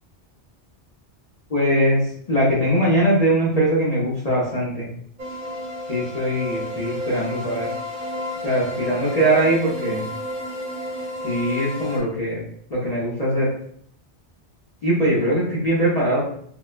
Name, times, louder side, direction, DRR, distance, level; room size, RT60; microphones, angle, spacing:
voice 1, 1.5-4.9 5.9-7.7 8.4-10.0 11.2-12.4 12.7-13.5 14.8-16.3, equal, 40° left, -7 dB, 0.7 m, -21 dB
sound 1, 5.2-12.0, equal, 50° right, 0.8 m, -31 dB
3.7 x 2.1 x 2.4 m, 0.63 s
omnidirectional pair, 1.2 m